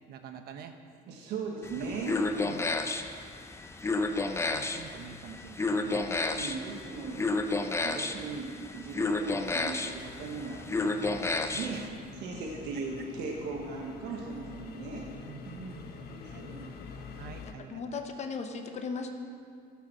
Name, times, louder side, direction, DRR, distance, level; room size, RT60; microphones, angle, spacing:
voice 1, 0.1-0.7 2.4-3.2 3.6-3.9 4.5-6.1 11.7-11.9 15.2-16.4 17.2-17.8, right 7 dB, 70° right, 7 dB, 0.9 m, -47 dB
voice 2, 1.1-2.2 6.3-7.2 7.8-10.6 11.5-11.8 12.2-15.1 16.0-16.8, right 4 dB, 85° right, 0 dB, 1.4 m, -38 dB
sound 1, 1.6-11.9, left 3 dB, 15° left, 0.6 m, -32 dB
sound 2, 10.0-17.5, left 5 dB, 70° left, 1.1 m, -46 dB
voice 3, 17.7-19.1, left 4 dB, 40° left, 4 dB, 1.0 m, -36 dB
14.0 x 6.0 x 6.1 m, 2.3 s
cardioid pair, 110°, 17 cm